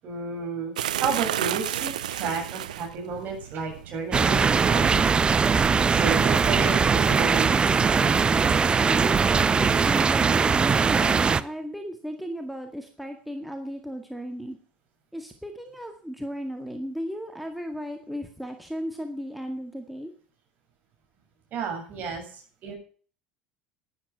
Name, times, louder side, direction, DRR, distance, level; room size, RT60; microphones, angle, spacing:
voice 1, 0.0-5.1 5.4-7.5 21.5-22.7, right 5 dB, 45° right, 2 dB, 7.5 m, -32 dB
sound 1, 0.8-6.3, right 11 dB, 70° right, 0.7 m, -33 dB
sound 2, 4.1-11.4, right 5 dB, 20° right, 0.8 m, -21 dB
voice 2, 8.8-14.6 15.1-20.1 22.0-22.1, equal, ahead, 4 dB, 2.0 m, -35 dB
12.5 x 11.0 x 6.0 m, 0.42 s
figure-of-eight pair, 70°, 4 cm